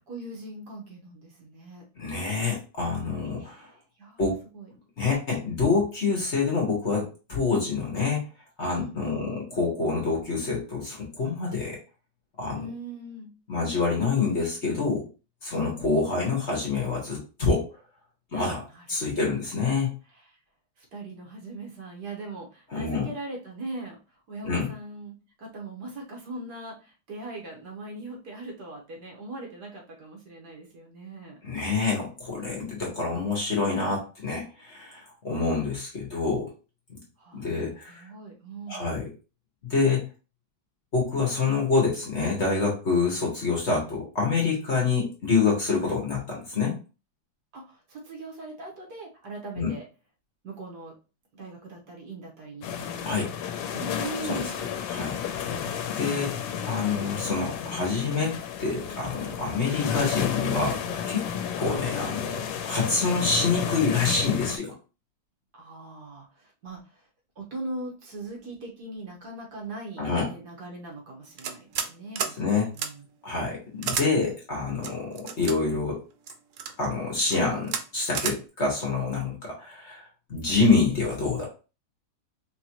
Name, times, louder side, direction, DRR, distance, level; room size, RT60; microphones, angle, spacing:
voice 1, 0.1-1.8 3.4-4.7 8.7-9.3 12.5-13.3 18.7-19.4 20.2-20.4 20.8-24.0 24.3-31.4 37.2-38.9 47.5-49.8 50.4-50.9 51.3-53.4 53.7-54.5 65.5-67.1 67.4-73.1, right 2 dB, 60° right, -1 dB, 1.7 m, -40 dB
voice 2, 2.0-3.7 4.2-4.4 5.0-8.2 8.6-11.8 12.4-12.6 13.5-15.1 15.4-17.7 18.3-18.6 18.9-19.9 22.7-23.1 24.4-24.7 31.4-36.5 36.9-37.0 37.3-38.0 38.7-39.1 39.6-40.1 40.9-46.8 49.6-49.7 53.0-53.3 54.3-56.4 56.6-61.2 61.6-64.7 70.0-70.3 72.4-72.7 73.2-76.0 76.8-81.4, left 4 dB, 40° left, -2 dB, 1.4 m, -27 dB
sound 1, 52.6-64.6, left 8 dB, 85° left, 1.3 m, -32 dB
sound 2, 71.4-71.9 72.2-72.3 72.8-72.9 73.8-74.1 74.8-75.5 76.3-76.7 77.2-77.4 77.7-77.8 78.1-78.4, right 7 dB, 85° right, 0.6 m, -30 dB
4.5 x 3.0 x 2.9 m, 0.33 s
omnidirectional pair, 2.0 m